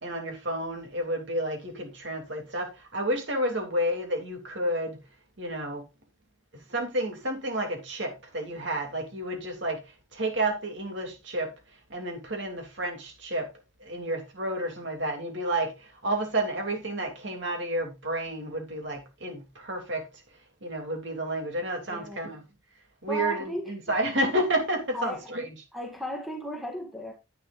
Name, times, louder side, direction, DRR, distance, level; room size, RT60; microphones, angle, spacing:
voice 1, 0.0-5.0 5.4-5.9 6.7-9.8 10.1-11.5 11.9-13.5 13.8-20.1 20.6-22.4 23.0-25.5, right 1 dB, 60° right, 3.0 m, -30 dB
voice 2, 21.9-22.2 23.1-23.7 24.9-25.3 25.7-27.1, left 1 dB, ahead, 1.8 m, -34 dB
10.5 x 9.2 x 2.6 m
head